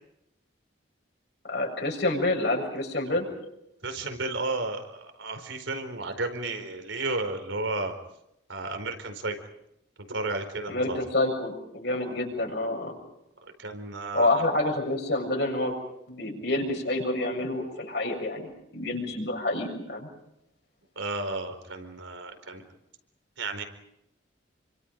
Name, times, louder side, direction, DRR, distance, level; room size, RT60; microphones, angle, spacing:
voice 1, 1.4-3.3 10.7-12.9 14.1-15.8 16.1-20.1, left 2 dB, 60° left, 0 dB, 7.5 m, -28 dB
voice 2, 3.8-8.0 8.5-9.3 10.1-11.0 12.1-12.2 13.6-14.5 21.0-22.6 23.4-23.6, right 2 dB, 85° right, 7 dB, 4.5 m, -33 dB
28.5 x 25.5 x 5.4 m, 0.80 s
head